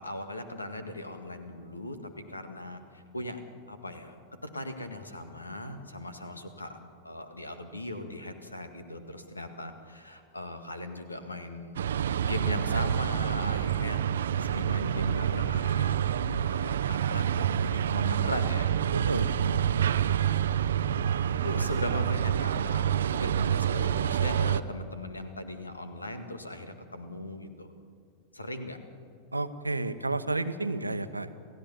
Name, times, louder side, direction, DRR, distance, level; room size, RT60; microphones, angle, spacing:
voice 1, 0.0-2.0 2.3-3.4 3.7-4.2 4.4-6.8 7.0-11.8 12.2-14.0 14.4-16.0 16.4-18.7 21.4-27.7 28.3-28.8, left 1 dB, 80° left, 8 dB, 1.8 m, -38 dB
sound 1, 11.8-24.6, right 9 dB, 65° right, 0.6 m, -27 dB
voice 2, 18.9-19.8 29.3-31.3, right 2 dB, 85° right, 11 dB, 1.0 m, -32 dB
28.5 x 15.5 x 7.2 m, 2.3 s
figure-of-eight pair, 90°, 0 cm